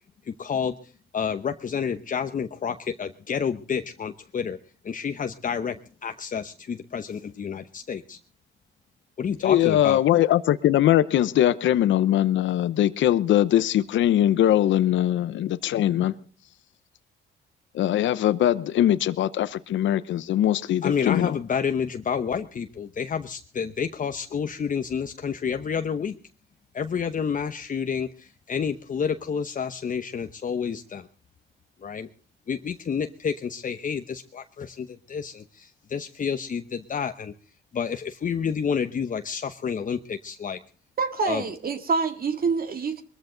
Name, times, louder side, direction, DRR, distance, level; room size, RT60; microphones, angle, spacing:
voice 1, 0.2-4.6 4.8-5.7 6.0-8.2 9.2-10.0 20.8-26.2 26.7-31.1 31.8-32.1 32.5-37.3 37.7-40.6 41.3-41.4, left 7 dB, 40° left, 1.0 m, -29 dB
voice 2, 9.4-16.1 17.7-21.4, left 12 dB, 75° left, 0.8 m, -21 dB
voice 3, 41.0-43.0, right 4 dB, 50° right, 2.1 m, -26 dB
22.0 x 14.0 x 3.9 m
cardioid pair, 90°, 20 cm